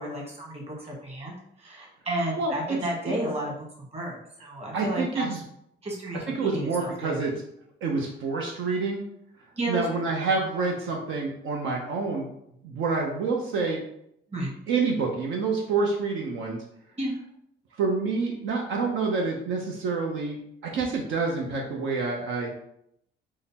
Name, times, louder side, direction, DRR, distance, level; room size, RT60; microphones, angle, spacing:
voice 1, 0.0-5.3 5.8-7.3 9.5-10.1 14.3-14.5 17.0-17.1, right 1 dB, 30° right, -2 dB, 1.4 m, -32 dB
voice 2, 2.4-2.8 3.1-3.2 4.7-5.4 6.4-7.3 7.8-9.0 9.7-12.3 12.6-13.8 14.7-16.6 17.8-20.4 20.6-22.7, right 4 dB, 80° right, 0 dB, 0.7 m, -27 dB
3.8 x 2.0 x 4.1 m, 0.74 s
cardioid pair, 90°, 20 cm